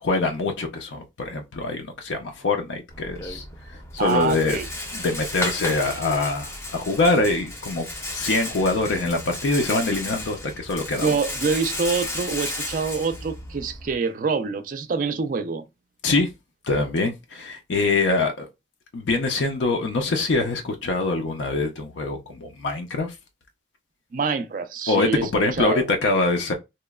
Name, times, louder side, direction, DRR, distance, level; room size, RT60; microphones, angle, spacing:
voice 1, 0.0-3.4 3.7-4.6 4.9-7.9 8.1-11.1 16.0-16.3 16.6-18.5 18.9-23.1 24.9-26.5, left 3 dB, 75° left, 0.5 m, -24 dB
Rattle, 2.9-13.9, left 1 dB, 15° left, 0.5 m, -34 dB
voice 2, 4.0-4.7 11.0-15.6 24.1-25.3 25.6-25.9, right 4 dB, 45° right, 0.3 m, -26 dB
2.9 x 2.0 x 2.2 m
head